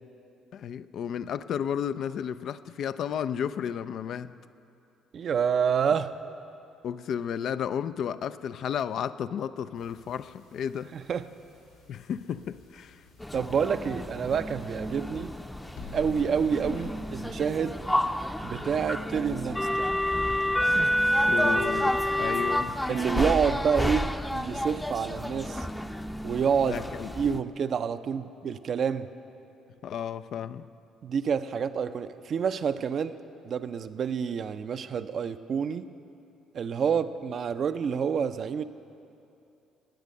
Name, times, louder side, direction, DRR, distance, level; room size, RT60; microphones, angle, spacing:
voice 1, 0.5-4.3 6.8-10.9 11.9-13.0 21.3-22.8 26.6-27.1 29.8-30.7, left 8 dB, 60° left, 0.4 m, -33 dB
voice 2, 5.1-6.2 10.9-11.3 13.3-15.3 15.9-17.8 18.4-19.9 20.7-21.0 22.9-25.7 26.2-26.9 27.2-29.1 31.0-33.2 33.4-35.9 36.5-38.6, right 7 dB, 50° right, 0.5 m, -28 dB
sound 1, 9.7-18.0, left 5 dB, 85° left, 4.2 m, -50 dB
sound 2, 13.2-27.4, left 1 dB, 10° left, 0.6 m, -29 dB
19.0 x 8.2 x 6.5 m
hypercardioid pair, 50°, 0 cm